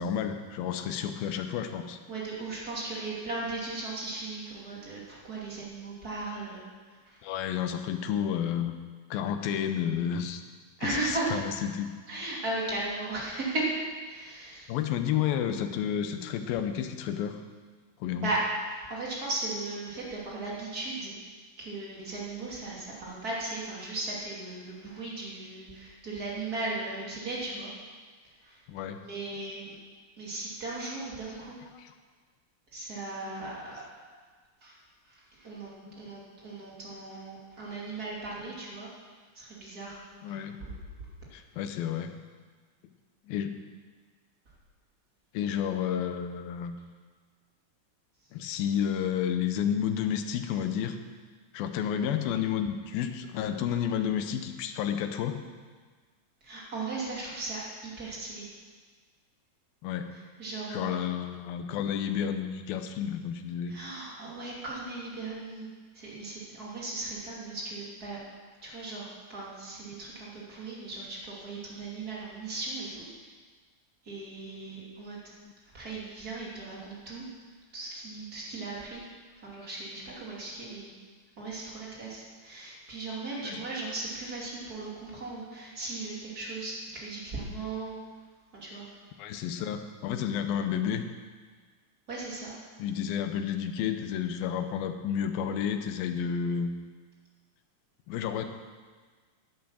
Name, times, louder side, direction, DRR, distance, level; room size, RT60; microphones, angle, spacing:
voice 1, 0.0-2.0 7.2-8.7 9.1-10.4 10.8-11.9 14.7-17.4 18.0-18.3 26.7-26.8 28.7-29.0 31.7-31.9 33.3-33.5 35.9-36.1 38.4-38.5 40.1-40.6 41.3-42.1 43.3-43.6 45.3-46.7 48.3-51.0 51.5-55.4 59.8-60.1 60.7-63.8 74.5-74.8 75.4-75.5 83.4-83.6 85.1-85.3 89.2-91.1 92.8-96.7 98.1-98.5, left 8 dB, 90° left, 7 dB, 2.6 m, -31 dB
voice 2, 2.1-7.2 10.8-11.4 12.1-14.7 18.2-18.4 18.8-21.2 21.6-27.7 28.4-28.6 29.0-29.7 30.2-31.6 32.7-33.9 34.6-34.8 35.1-38.9 39.3-40.0 40.3-40.4 56.4-58.5 60.4-60.9 63.7-65.7 65.9-68.2 68.6-73.0 74.0-75.2 75.7-77.3 77.7-79.0 79.4-80.9 81.4-88.0 88.5-89.0 92.1-92.5, right 2 dB, 30° right, -5 dB, 2.7 m, -37 dB
11.0 x 8.6 x 7.4 m, 1.5 s
omnidirectional pair, 4.1 m